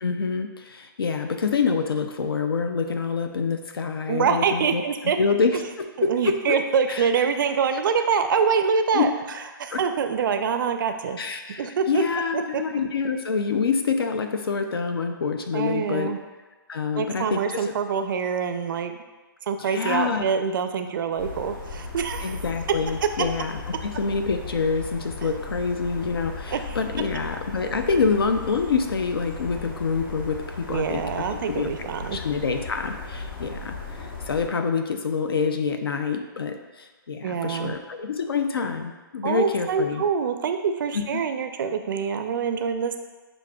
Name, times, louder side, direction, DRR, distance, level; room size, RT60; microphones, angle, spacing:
voice 1, 0.0-6.6 6.9-7.1 8.9-9.1 9.7-9.8 11.2-16.1 16.7-17.7 19.6-20.2 22.2-31.0 31.3-40.0 40.9-41.2, left 5 dB, 90° left, 6 dB, 0.5 m, -26 dB
voice 2, 4.1-5.2 6.0-9.1 9.6-11.2 11.6-12.0 12.3-12.6 15.5-16.2 17.0-18.9 19.4-22.4 26.5-26.8 30.7-32.2 37.2-37.7 39.2-43.0, right 6 dB, 60° right, 7 dB, 0.4 m, -25 dB
sound 1, 21.2-34.5, left 3 dB, 65° left, 1.1 m, -37 dB
6.4 x 2.6 x 2.3 m, 1.3 s
hypercardioid pair, 145°, 12 cm